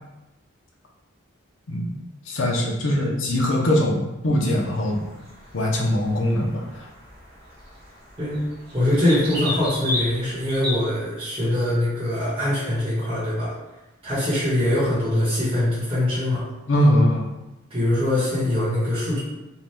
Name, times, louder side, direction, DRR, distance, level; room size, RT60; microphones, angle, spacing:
voice 1, 2.3-5.0 5.5-6.9 16.7-17.3, left 1 dB, 70° left, -2 dB, 0.6 m, -21 dB
sound 1, 4.7-10.7, left 1 dB, 45° right, 0.7 m, -34 dB
voice 2, 8.7-13.5 14.0-16.4 17.7-19.2, left 1 dB, 25° right, -11 dB, 0.9 m, -23 dB
2.7 x 2.2 x 3.3 m, 0.99 s
head